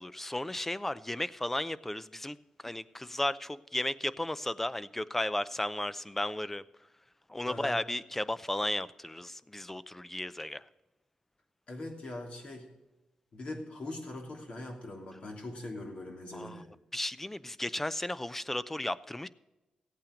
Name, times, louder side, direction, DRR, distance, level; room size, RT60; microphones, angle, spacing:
voice 1, 0.0-2.4 2.6-6.6 7.3-10.6 16.3-16.6 16.9-19.3, left 1 dB, 10° left, 16 dB, 0.5 m, -34 dB
voice 2, 7.4-7.8 11.7-12.7 13.3-16.7, left 2 dB, 55° left, 1 dB, 3.0 m, -41 dB
15.5 x 8.7 x 5.2 m, 1.0 s
cardioid pair, 90°, 2 cm